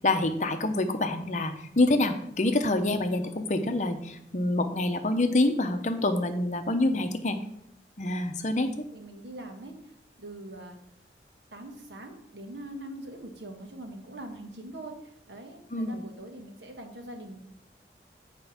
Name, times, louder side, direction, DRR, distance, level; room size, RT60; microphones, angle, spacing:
voice 1, 0.0-7.4 8.0-8.7 15.7-16.0, left 2 dB, 40° left, 7 dB, 0.7 m, -26 dB
voice 2, 8.6-9.7 10.2-10.8 11.5-14.9 15.3-17.4, right 1 dB, 80° right, 4 dB, 1.3 m, -42 dB
7.6 x 4.5 x 5.8 m, 0.75 s
head